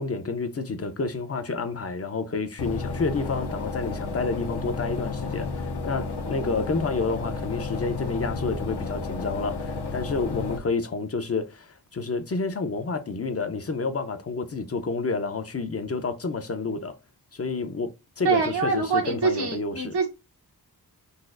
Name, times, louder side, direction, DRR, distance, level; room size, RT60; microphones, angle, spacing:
voice 1, 0.0-16.9 17.3-19.9, left 4 dB, 40° left, 0.5 m, -29 dB
sound 1, 2.6-10.6, left 4 dB, 85° left, 0.6 m, -32 dB
voice 2, 18.2-20.1, right 4 dB, 80° right, 1.1 m, -24 dB
4.0 x 2.3 x 2.4 m
wide cardioid pair, 85°, 39 cm